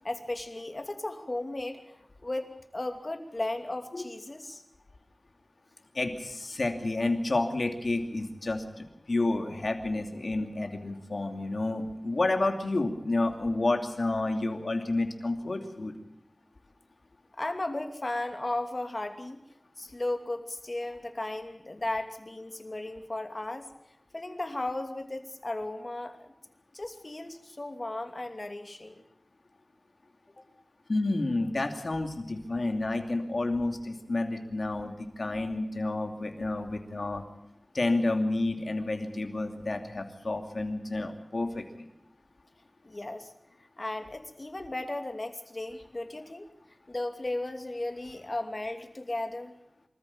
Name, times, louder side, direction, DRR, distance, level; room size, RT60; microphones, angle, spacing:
voice 1, 0.0-4.6 17.3-19.4 19.8-23.7 24.1-26.3 26.7-29.0 30.4-30.5 42.8-43.3 43.8-46.5 46.9-49.5, left 2 dB, 45° left, 6 dB, 2.6 m, -35 dB
voice 2, 5.9-16.0 30.9-37.2 37.7-41.8, left 2 dB, 75° left, 5 dB, 2.7 m, -30 dB
26.0 x 14.0 x 8.7 m, 0.84 s
wide cardioid pair, 50°, 0 cm